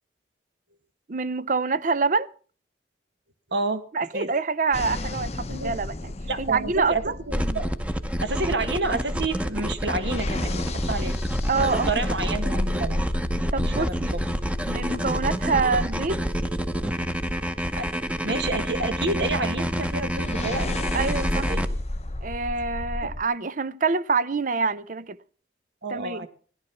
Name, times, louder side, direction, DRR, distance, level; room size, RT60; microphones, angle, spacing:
voice 1, 1.1-2.3 3.9-6.1 6.4-7.1 11.5-12.0 13.5-14.2 14.7-16.3 20.9-21.5 22.2-25.2 25.9-26.3, right 4 dB, 45° right, 0.6 m, -26 dB
voice 2, 3.5-3.8 4.1-4.3 5.5-5.7 6.2-7.7 8.2-11.2 11.6-13.0 13.6-14.2 17.8-17.9 18.2-20.8 21.3-21.6 23.0-23.1 25.8-26.3, right 3 dB, 75° right, 1.7 m, -29 dB
sound 1, 4.7-8.2 9.8-17.8 20.1-23.2, left 1 dB, 35° left, 0.7 m, -32 dB
sound 2, 7.3-21.7, equal, 5° right, 0.9 m, -28 dB
16.0 x 12.0 x 5.9 m
head